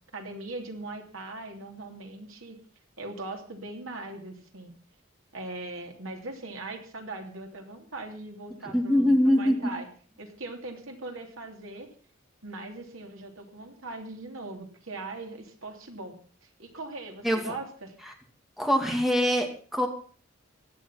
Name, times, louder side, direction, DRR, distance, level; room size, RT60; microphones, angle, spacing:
voice 1, 0.1-2.6 3.0-4.7 5.3-9.9 10.2-11.9 12.4-16.2 16.4-17.9, right 2 dB, 75° right, 4 dB, 3.1 m, -40 dB
voice 2, 8.7-9.7 17.2-17.5 18.6-19.9, equal, ahead, 3 dB, 2.4 m, -23 dB
16.5 x 10.5 x 5.8 m, 0.43 s
head